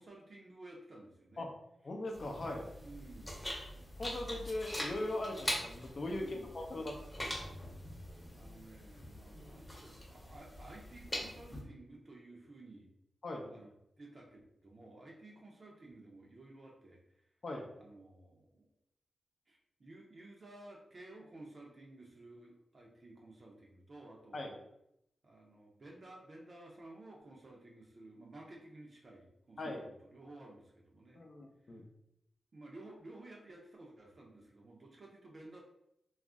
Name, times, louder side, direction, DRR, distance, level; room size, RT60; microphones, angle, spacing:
voice 1, 0.0-1.4 2.8-3.4 6.2-6.5 8.3-12.9 13.4-13.7 14.0-17.3 17.7-18.7 19.5-24.5 25.2-31.2 31.6-31.7 32.5-35.6, right 2 dB, 45° right, -2 dB, 0.6 m, -54 dB
voice 2, 1.8-2.7 4.0-7.2 13.2-13.4 17.4-17.7 24.3-24.5 29.6-29.9 31.1-31.8, left 1 dB, 55° left, 1 dB, 0.5 m, -40 dB
sound 1, 2.1-11.6, left 1 dB, 15° left, 0.8 m, -43 dB
2.4 x 2.0 x 3.5 m, 0.80 s
cardioid pair, 80°, 0 cm